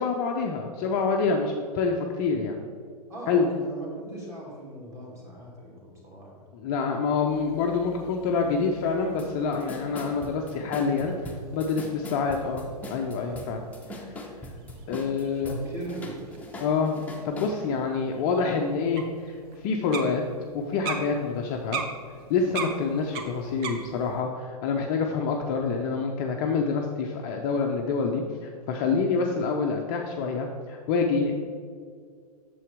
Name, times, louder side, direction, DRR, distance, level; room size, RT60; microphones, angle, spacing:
voice 1, 0.0-2.6 3.3-3.5 6.5-13.6 13.9-14.2 14.9-15.6 16.6-20.2 20.5-21.8 22.3-31.4, left 4 dB, 30° left, 2 dB, 0.6 m, -27 dB
voice 2, 3.1-6.4 15.4-16.3, right 1 dB, 15° right, -3 dB, 2.2 m, -39 dB
sound 1, 7.3-24.2, right 5 dB, 35° right, 0.8 m, -42 dB
sound 2, 9.2-9.3 9.5-15.6 15.9-17.5, left 1 dB, 5° left, 0.9 m, -41 dB
8.4 x 6.9 x 3.5 m, 2.1 s
figure-of-eight pair, 105°, 20 cm